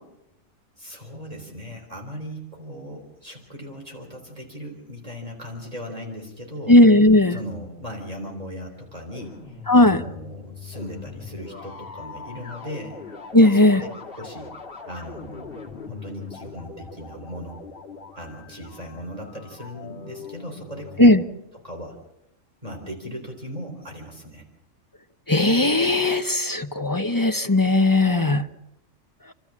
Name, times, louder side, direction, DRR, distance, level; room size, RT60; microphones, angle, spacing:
voice 1, 0.8-6.8 7.3-13.0 13.4-13.9 14.1-14.5 14.9-17.6 18.2-21.1 21.6-22.0 22.6-24.5, equal, 25° right, 0 dB, 3.8 m, -38 dB
voice 2, 6.7-7.4 9.7-10.0 13.3-13.8 21.0-21.2 25.3-28.5, left 1 dB, 20° left, 7 dB, 0.6 m, -16 dB
sound 1, 9.1-21.1, left 5 dB, 45° left, 2.4 m, -41 dB
28.5 x 13.5 x 7.3 m, 0.89 s
omnidirectional pair, 1.4 m